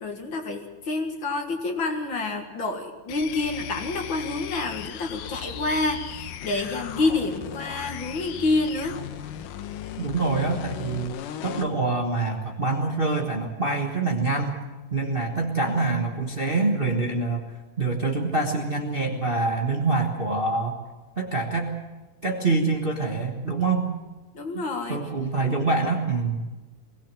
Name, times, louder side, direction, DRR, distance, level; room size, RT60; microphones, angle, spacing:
voice 1, 0.0-9.0 24.3-25.0, left 3 dB, 45° left, 5 dB, 2.1 m, -28 dB
sound 1, 3.1-11.7, left 10 dB, 80° left, 2.5 m, -37 dB
voice 2, 10.0-11.1 11.4-14.6 14.9-17.4 17.8-20.8 21.2-21.7 22.2-23.9 24.5-24.6 24.9-26.4, right 3 dB, 90° right, 2 dB, 0.5 m, -25 dB
21.5 x 18.0 x 7.5 m, 1.2 s
omnidirectional pair, 3.7 m